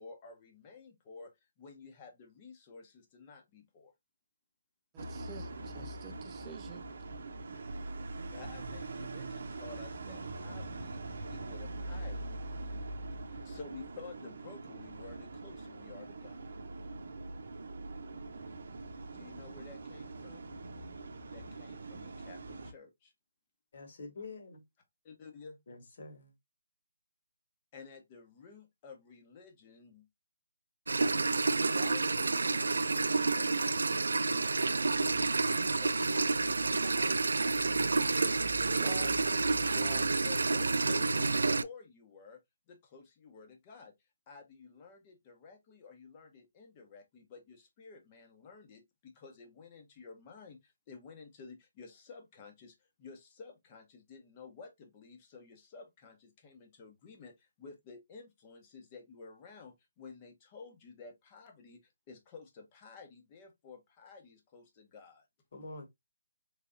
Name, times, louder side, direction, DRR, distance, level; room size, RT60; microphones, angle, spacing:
voice 1, 0.0-3.9 8.3-12.4 13.2-16.5 19.1-20.4 21.3-23.1 25.0-25.6 27.7-30.1 31.5-34.6 34.9-37.4 40.1-42.4 42.7-43.9 44.3-65.2, left 4 dB, 20° left, 0.9 m, -52 dB
voice 2, 4.9-6.9 38.7-40.2, right 8 dB, 15° right, 0.4 m, -48 dB
sound 1, 5.0-22.7, right 2 dB, 60° right, 0.7 m, -43 dB
voice 3, 23.7-24.6 25.7-26.3 65.5-65.9, left 3 dB, 45° left, 1.4 m, -46 dB
sound 2, 30.9-41.6, right 3 dB, 90° right, 0.3 m, -29 dB
3.4 x 3.3 x 2.6 m
hypercardioid pair, 165°, 0 cm